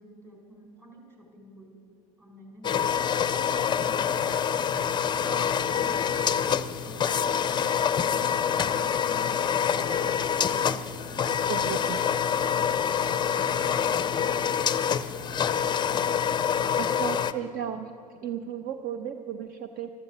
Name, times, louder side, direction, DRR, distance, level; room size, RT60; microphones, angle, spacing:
voice 1, 0.0-1.8 2.2-3.0 3.2-11.1 11.6-14.7 15.6-16.8, equal, 15° right, 1 dB, 4.4 m, -51 dB
sound 1, 2.6-17.3, left 8 dB, 25° left, 0.6 m, -26 dB
voice 2, 11.5-12.0 16.7-17.9 18.2-19.9, right 9 dB, 45° right, 9 dB, 0.7 m, -34 dB
13.5 x 13.0 x 7.0 m, 2.6 s
supercardioid pair, 95°, 20 cm